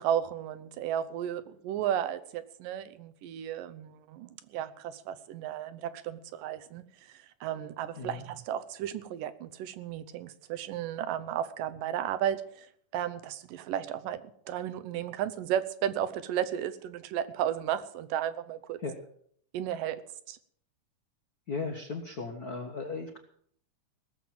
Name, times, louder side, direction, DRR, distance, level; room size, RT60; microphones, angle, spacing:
voice 1, 0.0-18.8 19.5-20.4, right 10 dB, 90° right, 11 dB, 2.6 m, -34 dB
voice 2, 21.5-23.2, left 4 dB, 80° left, 4 dB, 0.8 m, -36 dB
18.0 x 7.2 x 7.6 m, 0.63 s
omnidirectional pair, 3.8 m